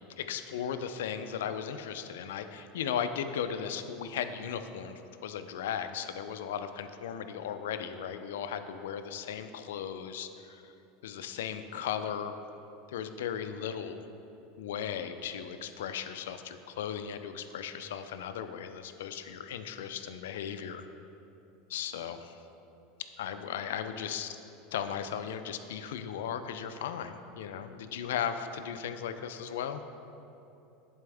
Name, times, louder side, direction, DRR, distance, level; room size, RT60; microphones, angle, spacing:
voice 1, 0.2-10.7 11.0-12.4 12.9-14.0 14.6-20.9 21.7-22.3 23.2-24.4 24.7-29.8, left 8 dB, 90° left, 9 dB, 0.4 m, -36 dB
10.5 x 4.2 x 3.4 m, 2.9 s
supercardioid pair, 135°, 0 cm